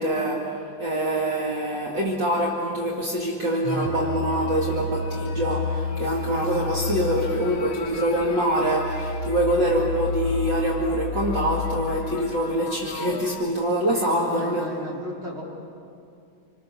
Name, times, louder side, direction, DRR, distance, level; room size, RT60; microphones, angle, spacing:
voice 1, 0.0-14.7, right 1 dB, 65° right, -2 dB, 2.8 m, -25 dB
sound 1, 3.6-13.4, left 4 dB, 85° left, 2.0 m, -31 dB
voice 2, 13.9-15.4, equal, 30° right, -5 dB, 5.3 m, -35 dB
27.5 x 25.5 x 6.9 m, 2.5 s
omnidirectional pair, 2.2 m